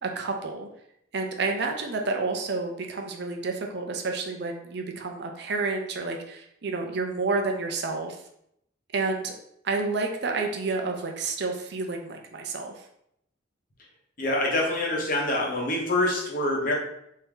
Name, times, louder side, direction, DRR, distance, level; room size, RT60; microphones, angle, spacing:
voice 1, 0.0-0.7 1.1-8.2 8.9-9.3 9.6-12.8, right 3 dB, 55° right, 3 dB, 0.5 m, -30 dB
voice 2, 14.2-16.7, left 1 dB, 40° left, -1 dB, 0.8 m, -25 dB
3.4 x 2.7 x 3.5 m, 0.75 s
head